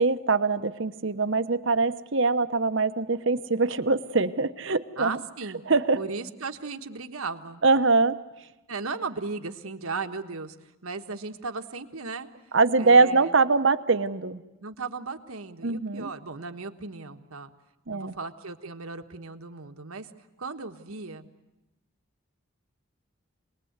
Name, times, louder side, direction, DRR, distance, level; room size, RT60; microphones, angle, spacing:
voice 1, 0.0-5.2 5.7-6.0 7.6-8.2 12.5-14.4 15.6-16.1 17.9-18.1, right 3 dB, 60° right, 11 dB, 0.9 m, -23 dB
voice 2, 5.0-5.6 5.9-7.6 8.7-10.6 10.8-12.3 12.8-13.3 14.6-17.5 17.9-20.1 20.4-21.3, right 4 dB, 80° right, 6 dB, 1.4 m, -36 dB
27.0 x 20.5 x 8.1 m, 1.0 s
head